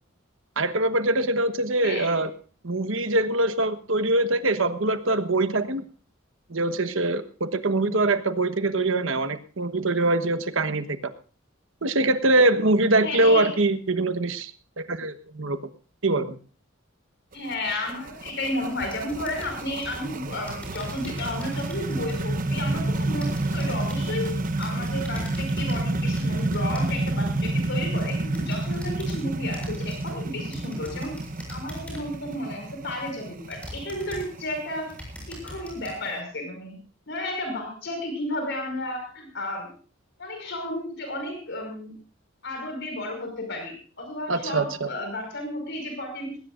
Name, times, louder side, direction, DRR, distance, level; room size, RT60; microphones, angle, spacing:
voice 1, 0.6-2.3 2.6-5.8 6.5-10.9 11.8-14.5 14.8-15.6 16.0-16.4 44.3-44.9, right 2 dB, 70° right, 10 dB, 1.3 m, -23 dB
voice 2, 1.8-2.2 13.0-13.6 17.3-31.1 31.5-34.9 35.3-36.8 37.1-39.7 40.2-41.9 42.4-46.4, left 1 dB, 60° left, 4 dB, 5.3 m, -32 dB
sound 1, 17.3-36.1, right 2 dB, 45° right, 1.0 m, -29 dB
sound 2, 18.8-20.0 20.5-27.2 27.7-29.2 29.5-30.2 30.5-32.2 32.8-32.9 33.5-34.5 34.8-35.9, equal, 5° left, 7.2 m, -42 dB
20.0 x 18.5 x 2.6 m, 0.38 s
head